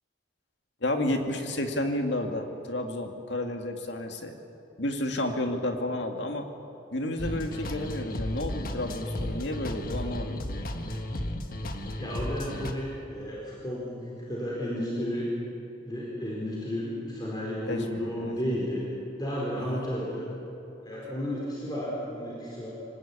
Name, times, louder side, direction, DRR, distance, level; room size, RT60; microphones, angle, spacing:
voice 1, 0.8-4.3 4.8-6.5 6.9-10.5 17.7-17.8 18.2-18.3 19.7-19.9, left 1 dB, 65° left, 4 dB, 2.3 m, -31 dB
sound 1, 7.2-12.7, left 1 dB, 45° left, 1.6 m, -34 dB
voice 2, 12.0-15.3 15.9-18.9 19.2-20.3 20.8-22.7, equal, 20° left, -5 dB, 4.5 m, -32 dB
25.0 x 19.0 x 8.7 m, 3.0 s
head